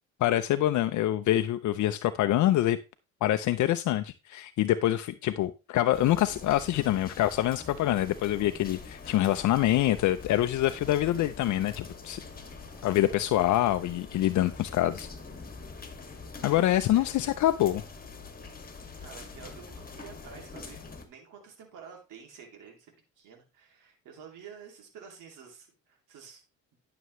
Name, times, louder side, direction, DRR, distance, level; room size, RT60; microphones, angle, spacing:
voice 1, 0.2-2.8 3.2-12.2 12.8-15.1 16.4-17.8, left 13 dB, 75° left, 0.6 m, -25 dB
sound 1, 5.9-21.0, left 4 dB, 30° left, 2.1 m, -44 dB
voice 2, 12.2-12.6 16.9-17.1 18.9-26.4, right 6 dB, 90° right, 2.6 m, -50 dB
11.0 x 6.8 x 3.1 m
cardioid pair, 90°, 30 cm